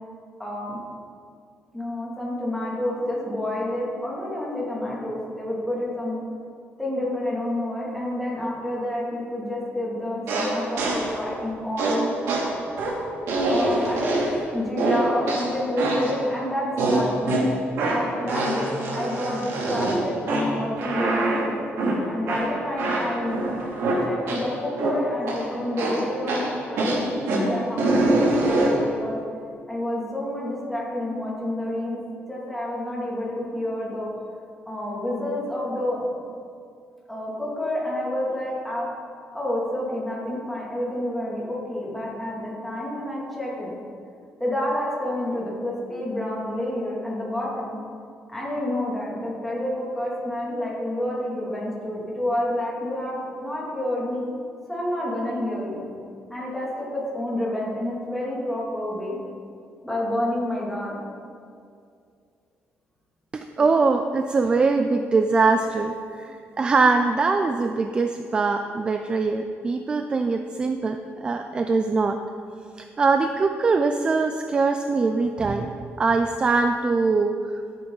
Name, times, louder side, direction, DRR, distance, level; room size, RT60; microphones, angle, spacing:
voice 1, 0.4-0.8 1.7-6.2 6.8-12.1 13.5-17.3 17.8-21.5 22.1-23.4 24.0-29.2 29.7-32.0 32.3-34.1 34.7-36.1 37.1-38.9 39.3-43.7 44.4-47.8 48.3-54.3 54.7-55.9 56.3-59.2 59.8-61.0, left 1 dB, 5° left, -6 dB, 2.5 m, -29 dB
sound 1, 10.3-11.2 11.8-14.4 14.8-16.2 16.8-24.5 24.8-25.5 25.8-28.9, right 2 dB, 80° right, 2.8 m, -24 dB
voice 2, 63.3-72.2 72.8-75.7 76.0-77.3, right 4 dB, 20° right, 6 dB, 0.4 m, -22 dB
14.0 x 9.1 x 4.0 m, 2.3 s
cardioid pair, 180°, 4 cm